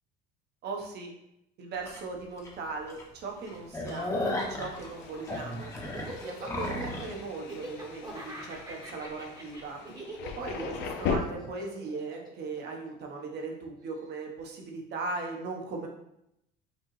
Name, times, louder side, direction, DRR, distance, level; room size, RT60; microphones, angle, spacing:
voice 1, 0.6-1.1 1.6-5.7 6.2-9.8 10.4-15.9, right 3 dB, 55° right, 1 dB, 1.1 m, -38 dB
sound 1, 1.9-2.0 2.4-2.5 2.9-3.0 3.4-7.1, left 1 dB, 15° left, 0.9 m, -34 dB
Thunder, 3.0-11.2, left 6 dB, 65° left, 0.6 m, -40 dB
Laughter, 5.0-13.4, right 2 dB, 20° right, 1.0 m, -43 dB
5.2 x 2.5 x 3.2 m, 0.80 s
supercardioid pair, 95°, 20 cm